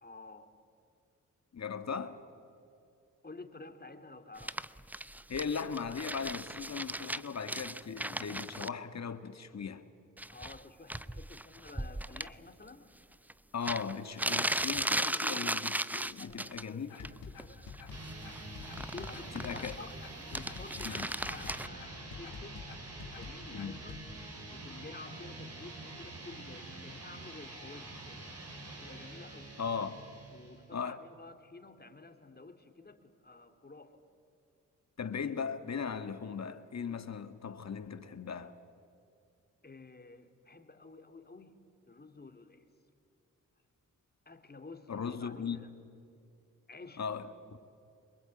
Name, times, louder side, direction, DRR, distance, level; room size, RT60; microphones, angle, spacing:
voice 1, 0.0-0.5 3.2-4.6 10.3-12.9 16.2-16.8 17.4-18.0 18.8-22.7 23.1-24.0 24.5-28.3 28.7-29.5 30.3-34.0 39.6-42.7 44.3-45.7 46.7-47.0, left 3 dB, 30° left, 2.6 m, -51 dB
voice 2, 1.5-2.2 5.3-9.9 13.5-17.1 19.3-19.8 20.8-21.1 23.5-23.8 29.6-30.0 30.7-31.0 35.0-38.6 44.9-45.7 47.0-47.6, left 6 dB, 50° left, 1.7 m, -38 dB
sound 1, 4.4-8.7 10.2-10.6 10.9-12.3 13.3-13.4 13.6-16.6 17.0-17.4 17.7-19.9 20.2-21.7, right 1 dB, 5° right, 0.6 m, -36 dB
sound 2, 16.9-24.0, left 5 dB, 85° left, 2.5 m, -46 dB
sound 3, 17.9-30.7, right 2 dB, 45° right, 4.8 m, -46 dB
24.0 x 22.0 x 8.8 m
cardioid pair, 55°, 33 cm